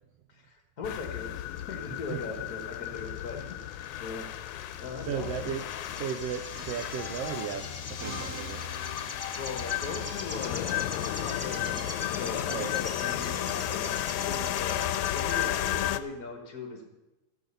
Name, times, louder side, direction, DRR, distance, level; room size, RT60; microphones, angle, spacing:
voice 1, 0.3-4.3 4.8-5.4 9.1-10.8 11.1-14.8 15.1-16.9, left 4 dB, 45° left, 3 dB, 1.2 m, -40 dB
sound 1, 0.8-16.0, left 13 dB, 80° left, 1.9 m, -33 dB
sound 2, 1.6-15.9, left 2 dB, 25° left, 0.3 m, -43 dB
voice 2, 5.0-5.6 5.9-8.6 12.5-12.7, right 8 dB, 80° right, 8 dB, 1.4 m, -35 dB
Musical instrument, 8.0-10.1, right 2 dB, 60° right, 3.7 m, -44 dB
13.0 x 9.2 x 6.8 m, 1.0 s
omnidirectional pair, 3.5 m